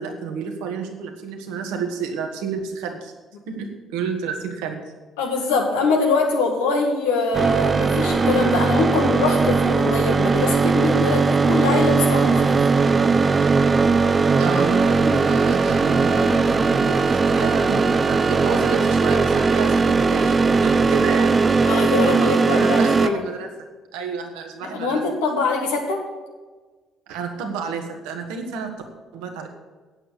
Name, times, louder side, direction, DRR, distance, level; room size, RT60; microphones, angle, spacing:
voice 1, 0.0-3.1 3.5-4.9 14.4-21.4 22.0-25.0 27.1-28.8 29.1-29.5, right 5 dB, 75° right, 3 dB, 1.6 m, -30 dB
voice 2, 5.2-12.6 21.6-23.3 24.6-26.1, left 3 dB, 80° left, 1 dB, 2.0 m, -23 dB
sound 1, 7.3-23.1, right 4 dB, 35° right, 0.7 m, -19 dB
8.8 x 8.1 x 8.3 m, 1.4 s
hypercardioid pair, 50°, 0 cm